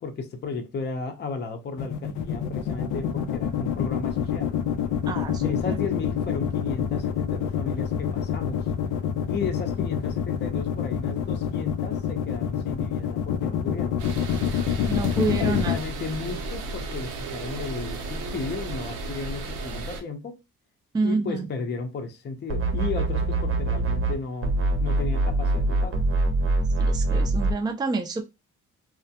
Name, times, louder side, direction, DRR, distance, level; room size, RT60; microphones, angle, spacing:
voice 1, 0.0-4.5 5.4-8.7 9.3-14.0 15.4-20.4 21.0-24.5 24.8-26.0, left 4 dB, 35° left, 0.6 m, -34 dB
sound 1, 1.8-15.8, left 9 dB, 85° left, 0.5 m, -26 dB
voice 2, 5.1-5.5 14.9-15.7 20.9-21.5 26.8-28.2, right 3 dB, 15° right, 0.4 m, -27 dB
sound 2, 14.0-20.0, right 3 dB, 85° right, 0.7 m, -34 dB
sound 3, 22.5-24.2 24.4-27.6, right 2 dB, 45° right, 0.7 m, -24 dB
2.3 x 2.1 x 2.7 m
cardioid pair, 90°, 30 cm